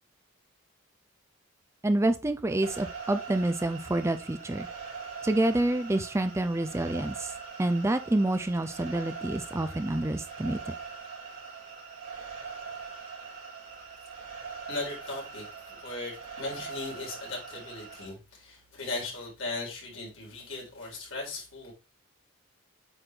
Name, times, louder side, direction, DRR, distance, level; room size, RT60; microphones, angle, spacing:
voice 1, 1.8-4.7 5.2-7.3 7.6-10.7, right 1 dB, 15° right, 0.4 m, -28 dB
sound 1, 2.6-18.1, right 5 dB, 85° right, 3.4 m, -42 dB
voice 2, 14.7-21.7, left 2 dB, 70° left, 4.0 m, -38 dB
8.8 x 4.2 x 3.2 m
head